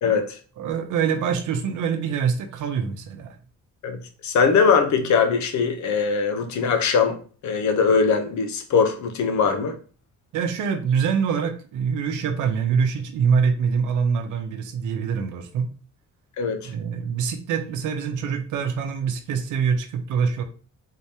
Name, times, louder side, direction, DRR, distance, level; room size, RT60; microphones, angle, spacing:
voice 1, 0.0-0.4 3.8-9.8 16.4-16.7, left 5 dB, 70° left, 0.9 m, -21 dB
voice 2, 0.6-3.4 10.3-15.7 16.6-20.4, right 6 dB, 85° right, 0.8 m, -24 dB
3.8 x 3.4 x 2.8 m
cardioid pair, 90°, 30 cm